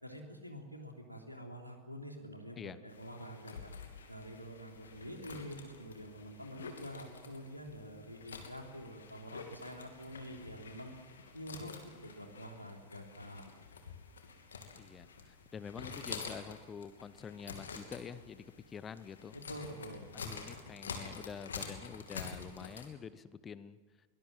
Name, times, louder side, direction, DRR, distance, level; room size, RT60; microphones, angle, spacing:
voice 1, 0.0-3.7 4.1-10.9 11.3-11.8 12.0-13.4 19.5-20.0, equal, 90° left, 2 dB, 3.3 m, -47 dB
sound 1, 2.9-22.9, left 5 dB, 70° left, 2.9 m, -48 dB
voice 2, 14.8-19.4 20.1-23.8, left 6 dB, 20° left, 16 dB, 0.8 m, -47 dB
23.0 x 19.5 x 7.6 m, 1.4 s
figure-of-eight pair, 90°, 0 cm